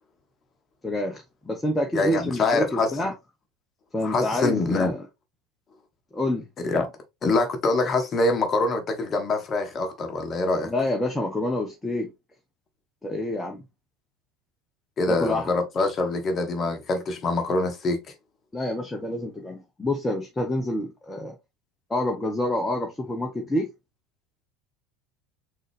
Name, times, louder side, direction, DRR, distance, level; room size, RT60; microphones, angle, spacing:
voice 1, 0.8-3.1 3.9-5.0 6.1-6.4 10.6-12.1 13.0-13.6 15.1-15.5 18.5-21.4 21.9-23.7, left 1 dB, 15° left, 1.0 m, -27 dB
voice 2, 1.9-2.9 4.0-4.9 6.6-6.9 7.2-10.7 15.0-18.0, left 2 dB, 35° left, 1.2 m, -24 dB
4.0 x 3.9 x 3.3 m
hypercardioid pair, 75°, 0 cm